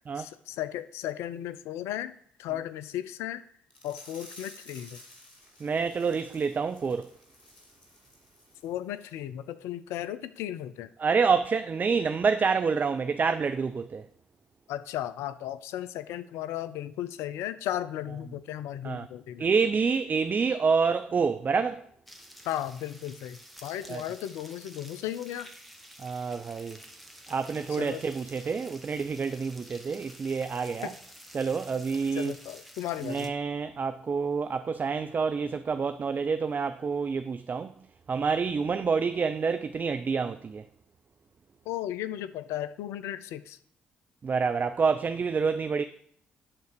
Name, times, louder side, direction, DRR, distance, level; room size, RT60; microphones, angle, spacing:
voice 1, 0.2-3.4 3.8-5.0 8.6-10.9 14.7-19.5 22.5-25.5 27.8-28.0 30.8-30.9 32.2-33.3 41.7-43.6, left 12 dB, 70° left, 0.5 m, -35 dB
sound 1, 3.7-8.7 9.0-9.2 9.6-9.7, left 1 dB, 90° left, 1.4 m, -52 dB
voice 2, 5.6-7.1 11.0-14.0 18.8-19.1 19.4-21.8 23.9-24.0 26.0-26.8 27.3-30.9 31.3-32.3 33.0-37.7 38.1-40.6 44.2-45.8, right 5 dB, 40° right, 0.5 m, -27 dB
sound 2, 22.1-33.3, equal, ahead, 1.5 m, -50 dB
11.5 x 4.0 x 6.7 m
figure-of-eight pair, 45°, 5 cm